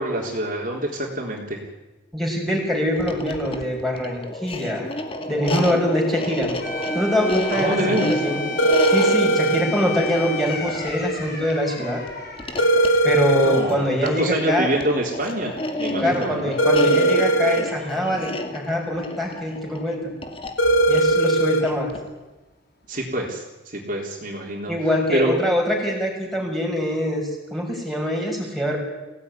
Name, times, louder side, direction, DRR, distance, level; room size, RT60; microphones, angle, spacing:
voice 1, 0.0-1.6 7.5-8.1 13.4-16.5 22.9-24.7 25.1-25.4, right 1 dB, 45° right, -1 dB, 3.7 m, -26 dB
voice 2, 2.1-4.9 5.3-6.6 6.9-8.4 8.9-12.0 13.0-14.7 16.0-20.1 20.9-21.9 24.7-28.8, equal, ahead, -2 dB, 6.3 m, -24 dB
sound 1, 2.9-22.2, left 1 dB, 25° left, 2.1 m, -31 dB
sound 2, 6.6-15.3 15.6-15.7 20.6-21.1, left 3 dB, 50° left, 6.9 m, -34 dB
sound 3, 8.6-9.6 12.6-13.6 16.6-17.6 20.6-21.6, right 2 dB, 70° left, 4.1 m, -18 dB
24.0 x 17.0 x 9.9 m, 1.1 s
head